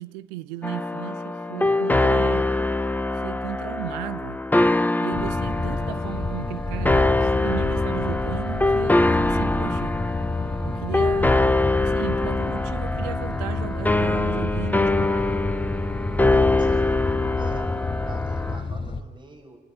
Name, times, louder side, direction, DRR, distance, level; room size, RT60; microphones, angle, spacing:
voice 1, 0.0-2.5 3.1-4.4 5.0-10.0 10.6-11.4 11.8-15.4, right 15 dB, 85° right, 0.7 m, -35 dB
sound 1, 0.6-18.6, left 2 dB, 10° left, 0.7 m, -23 dB
sound 2, 5.1-19.0, left 2 dB, 25° left, 1.3 m, -29 dB
voice 2, 16.6-16.9 17.4-17.7 18.0-19.6, right 2 dB, 20° right, 5.2 m, -45 dB
28.5 x 9.6 x 9.8 m
hypercardioid pair, 50°, 21 cm